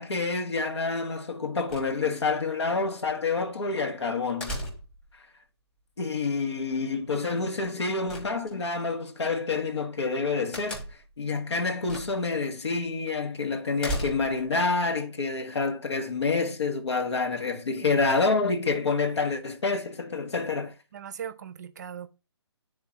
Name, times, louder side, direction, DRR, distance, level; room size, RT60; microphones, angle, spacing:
voice 1, 0.0-4.6 6.0-10.8 11.2-20.7, left 4 dB, 70° left, 1.4 m, -28 dB
sound 1, 1.7-2.3 4.4-5.1 8.1-8.8 10.5-11.2 11.9-12.3 12.7-12.8 13.8-14.5, equal, 5° left, 1.1 m, -35 dB
voice 2, 16.9-17.3 17.7-18.0 20.9-22.1, right 8 dB, 40° right, 0.5 m, -40 dB
11.0 x 3.8 x 2.7 m
hypercardioid pair, 155°, 15 cm